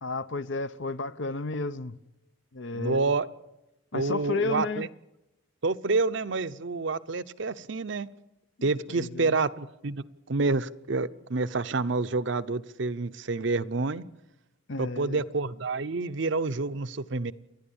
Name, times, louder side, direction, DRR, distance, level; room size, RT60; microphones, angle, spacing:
voice 1, 0.0-2.0 2.5-3.1 3.9-4.9 8.6-9.3 14.7-15.2, left 3 dB, 60° left, 0.8 m, -32 dB
voice 2, 2.7-3.3 3.9-4.9 5.6-8.1 8.6-14.0 14.8-17.3, right 3 dB, 60° right, 0.7 m, -28 dB
29.5 x 11.0 x 8.7 m
head